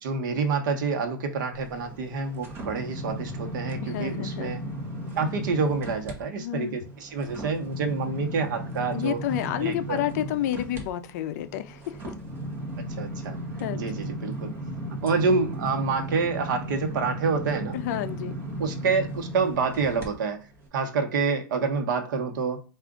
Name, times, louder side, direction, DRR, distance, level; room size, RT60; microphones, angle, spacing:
voice 1, 0.0-4.6 5.2-9.2 9.6-10.0 13.0-13.4 13.7-14.5 15.0-17.8 18.6-20.5 20.7-22.6, right 4 dB, 60° right, 1.0 m, -27 dB
sound 1, 1.5-6.2 6.6-20.1 20.5-20.7, right 1 dB, 20° right, 1.0 m, -36 dB
voice 2, 3.8-4.7 6.4-6.7 8.9-12.0 13.6-13.9 17.7-18.4, left 12 dB, 45° left, 0.5 m, -30 dB
4.7 x 2.5 x 3.7 m
supercardioid pair, 155°, 12 cm